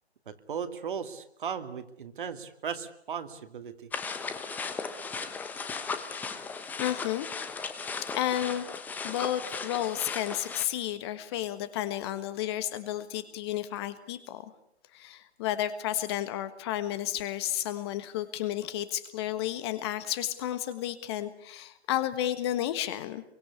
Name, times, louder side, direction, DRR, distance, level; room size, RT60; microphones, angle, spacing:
voice 1, 0.3-3.9 5.2-5.3, right 7 dB, 50° right, 8 dB, 2.5 m, -37 dB
Brisk walk on trail, 3.9-10.6, left 5 dB, 5° left, 1.0 m, -36 dB
voice 2, 6.8-7.4 8.1-8.6 9.0-14.5 14.9-23.2, left 12 dB, 25° left, 12 dB, 1.4 m, -32 dB
26.0 x 24.0 x 8.4 m, 0.75 s
figure-of-eight pair, 140°, 33 cm